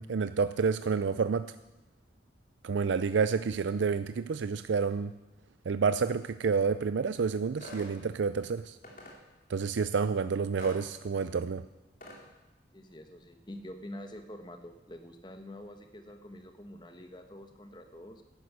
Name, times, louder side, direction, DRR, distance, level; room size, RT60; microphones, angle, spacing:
voice 1, 0.0-1.6 2.6-5.1 5.7-8.8 9.5-11.6, right 5 dB, 90° right, 12 dB, 0.4 m, -29 dB
sound 1, 7.6-7.9 8.8-9.2 10.6-10.8 12.0-12.2, left 1 dB, 45° left, 3.0 m, -45 dB
voice 2, 12.7-18.2, left 1 dB, 25° left, 7 dB, 1.2 m, -46 dB
11.5 x 10.5 x 8.1 m, 1.0 s
head